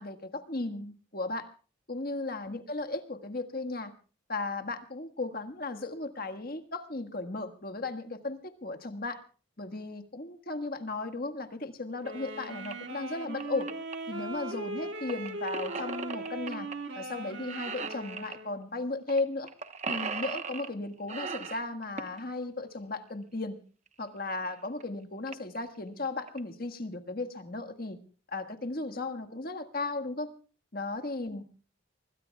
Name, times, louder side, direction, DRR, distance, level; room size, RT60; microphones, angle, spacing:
voice 1, 0.0-1.5 1.9-3.9 4.3-9.2 9.6-13.7 14.1-16.7 16.9-19.5 19.9-23.6 24.0-28.0 28.3-30.3 30.7-31.4, left 2 dB, 50° left, 7 dB, 1.6 m, -35 dB
sound 1, 12.0-18.6, right 1 dB, 65° right, 2.2 m, -39 dB
sound 2, 12.6-12.7 13.2-13.9 15.1-16.7 17.1-17.2 17.5-18.4 19.1-19.2 19.5-20.7 21.1-22.2 23.9-24.0 24.5-24.6 24.8-24.9 25.3-25.6 26.0-26.4, right 5 dB, 35° right, 1.0 m, -37 dB
25.0 x 22.0 x 2.3 m, 0.37 s
head